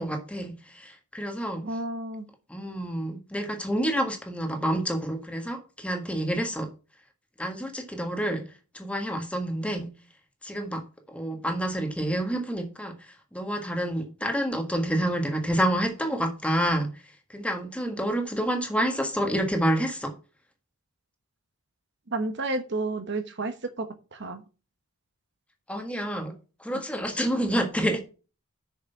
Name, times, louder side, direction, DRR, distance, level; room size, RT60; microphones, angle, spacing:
voice 1, 0.0-1.6 2.5-6.7 7.4-9.9 10.4-10.8 11.1-20.2 25.7-26.3 26.6-28.0, right 1 dB, 5° left, 1.5 m, -28 dB
voice 2, 1.6-2.3 22.1-24.4, right 2 dB, 55° right, 1.1 m, -31 dB
6.9 x 6.5 x 5.7 m
head